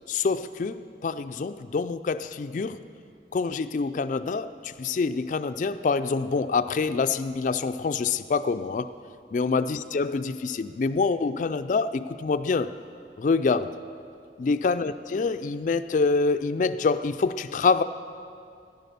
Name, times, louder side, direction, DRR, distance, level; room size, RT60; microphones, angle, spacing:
voice 1, 0.1-2.8 3.3-8.9 9.3-12.7 13.2-13.7 14.4-17.8, left 4 dB, 45° left, 10 dB, 0.3 m, -26 dB
13.5 x 10.5 x 6.7 m, 2.4 s
head